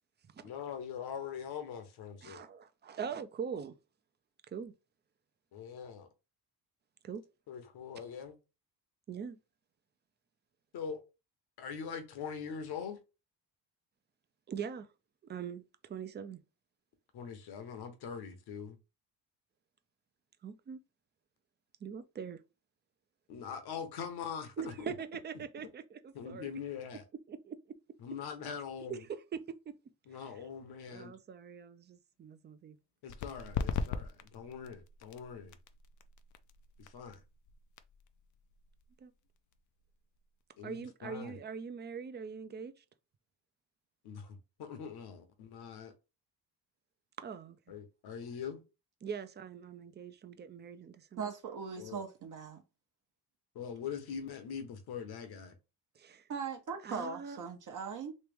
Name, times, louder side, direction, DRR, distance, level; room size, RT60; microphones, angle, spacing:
voice 1, 0.4-2.4 5.5-6.1 7.5-8.3 10.7-11.0 11.6-13.0 17.1-18.8 23.3-24.7 26.1-27.0 28.0-29.0 30.1-31.2 33.0-35.5 36.8-37.2 40.6-41.4 44.0-45.9 47.7-48.6 51.8-52.0 53.5-55.5, left 7 dB, 65° left, 1.1 m, -42 dB
voice 2, 2.2-3.7 4.5-4.7 7.0-7.2 9.1-9.4 14.5-14.9 15.3-15.6 15.9-16.4 20.4-20.8 21.8-22.4 24.6-26.5 27.3-27.6 28.9-29.0 29.3-29.6 30.9-32.8 39.0-39.1 40.6-42.7 47.2-47.6 49.0-51.3 56.0-56.3 56.8-57.4, right 7 dB, 25° right, 0.5 m, -42 dB
sound 1, 33.1-40.4, left 6 dB, 45° left, 0.5 m, -41 dB
voice 3, 51.2-52.6 56.3-58.1, right 6 dB, 50° right, 0.8 m, -40 dB
3.1 x 2.9 x 3.4 m
cardioid pair, 105°, 41 cm